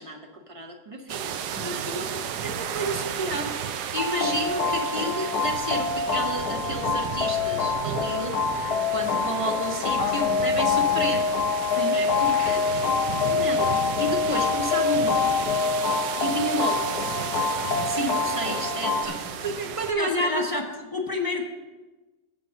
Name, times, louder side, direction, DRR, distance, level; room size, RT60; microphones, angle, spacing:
voice 1, 0.0-11.2 11.6-12.9 13.3-13.7 14.0-15.3 16.2-16.9 17.8-20.6, right 1 dB, 30° right, 2 dB, 0.6 m, -31 dB
sound 1, 1.1-19.9, right 8 dB, 85° right, 1.2 m, -33 dB
sound 2, 4.0-19.1, left 5 dB, 75° left, 1.3 m, -25 dB
voice 2, 10.0-11.2 11.7-12.0 19.1-19.2 19.9-20.6 20.9-21.4, left 2 dB, 30° left, 2 dB, 0.4 m, -31 dB
7.5 x 5.2 x 7.0 m, 1.2 s
omnidirectional pair, 1.7 m